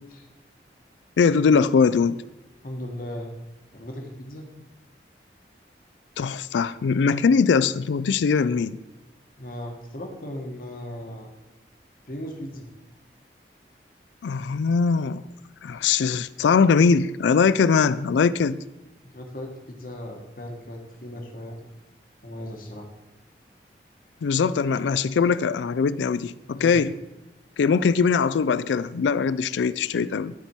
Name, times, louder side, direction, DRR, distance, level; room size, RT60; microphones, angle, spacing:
voice 1, 1.2-2.2 6.2-8.8 14.2-15.2 15.6-18.6 24.2-26.9 27.6-30.3, left 5 dB, 90° left, 0.4 m, -21 dB
voice 2, 2.6-3.3 3.7-4.5 9.4-11.3 12.0-12.7 19.0-21.6 22.2-22.9 26.5-26.8, left 1 dB, 50° left, 1.3 m, -37 dB
12.5 x 4.4 x 4.5 m
head